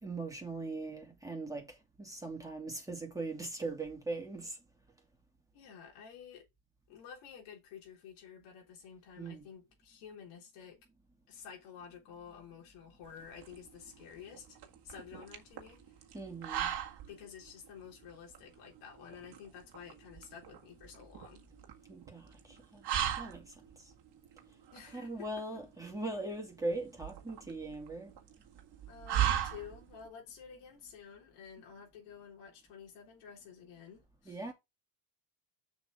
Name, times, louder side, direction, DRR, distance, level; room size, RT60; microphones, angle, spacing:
voice 1, 0.0-4.6 9.2-9.4 16.1-16.7 21.9-22.8 23.2-23.5 24.9-28.1 34.3-34.5, right 2 dB, 5° right, 2.6 m, -40 dB
voice 2, 5.5-6.5 6.9-10.8 11.3-14.6 14.8-15.8 17.1-21.4 24.7-25.4 28.9-34.5, left 7 dB, 80° left, 3.7 m, -51 dB
sound 1, 13.0-30.1, right 10 dB, 50° right, 1.8 m, -39 dB
6.8 x 6.2 x 3.9 m
cardioid pair, 125°, 49 cm